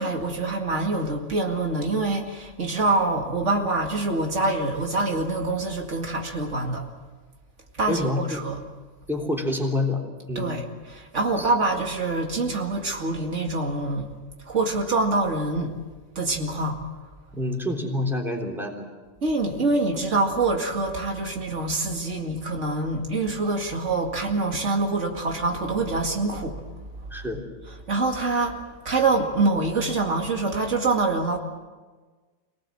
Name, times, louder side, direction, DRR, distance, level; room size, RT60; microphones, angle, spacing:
voice 1, 0.0-6.9 7.7-8.6 10.4-14.1 14.5-15.7 16.2-16.8 19.2-26.6 27.9-28.6 28.8-31.4, right 3 dB, 85° right, 2 dB, 2.6 m, -25 dB
voice 2, 7.9-8.4 9.1-10.0 10.3-10.5 11.4-11.5 17.3-18.9 27.1-27.4, left 2 dB, ahead, 0 dB, 3.4 m, -27 dB
25.5 x 18.5 x 7.7 m, 1.4 s
omnidirectional pair, 1.2 m